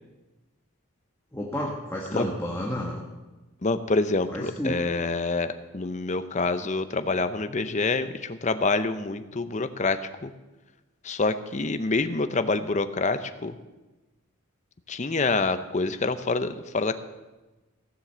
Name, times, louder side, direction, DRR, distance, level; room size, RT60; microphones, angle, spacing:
voice 1, 1.3-3.0 4.3-4.8, equal, 10° left, -2 dB, 1.3 m, -31 dB
voice 2, 3.6-10.3 11.0-13.5 14.9-17.0, left 3 dB, 35° left, 10 dB, 0.6 m, -27 dB
16.5 x 7.6 x 6.8 m, 1.1 s
head